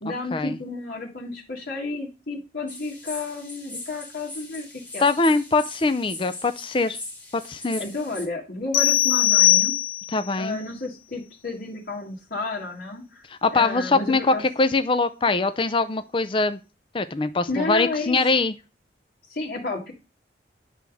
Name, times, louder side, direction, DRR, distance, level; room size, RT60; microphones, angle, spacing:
voice 1, 0.0-4.7 4.9-5.0 7.8-9.8 10.4-14.4 17.5-18.2 19.3-19.9, left 3 dB, 55° left, -3 dB, 1.7 m, -31 dB
sound 1, 2.7-8.3, left 2 dB, 10° left, 1.5 m, -40 dB
voice 2, 5.0-7.0 7.3-7.8 10.1-10.6 13.3-16.6 16.9-18.5, left 3 dB, 30° left, 10 dB, 0.5 m, -23 dB
sound 2, 8.7-10.3, left 14 dB, 85° left, 1.1 m, -19 dB
10.5 x 3.5 x 6.2 m, 0.31 s
head